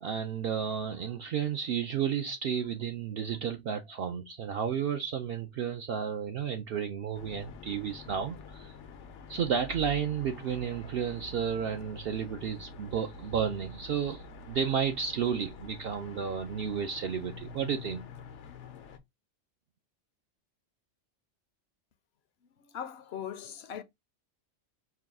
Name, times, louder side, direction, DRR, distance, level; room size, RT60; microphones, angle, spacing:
voice 1, 0.0-8.7 9.3-18.1, right 7 dB, 65° right, 0.7 m, -32 dB
sound 1, 7.1-19.0, left 2 dB, 90° left, 1.0 m, -47 dB
voice 2, 22.6-23.8, left 9 dB, 70° left, 0.8 m, -40 dB
4.7 x 2.3 x 3.5 m
omnidirectional pair, 1.2 m